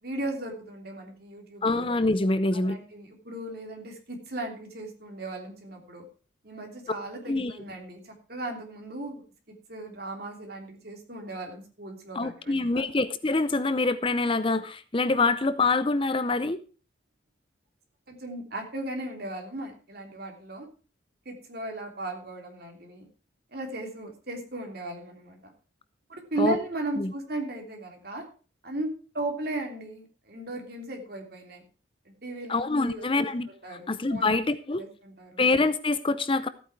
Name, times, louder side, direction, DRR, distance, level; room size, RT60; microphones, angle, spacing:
voice 1, 0.0-1.9 2.5-6.0 6.4-9.2 9.7-12.8 18.1-20.7 21.2-23.1 23.5-25.5 26.1-28.2 28.6-28.9 29.1-31.6 32.2-33.3 33.6-34.3 34.7-35.4, right 2 dB, 50° right, 3 dB, 3.2 m, -36 dB
voice 2, 1.6-2.8 7.3-7.5 12.1-16.6 26.4-26.6 27.0-27.1 32.5-34.8 35.4-36.5, left 3 dB, 25° left, 13 dB, 0.6 m, -25 dB
14.5 x 8.9 x 4.6 m, 0.37 s
head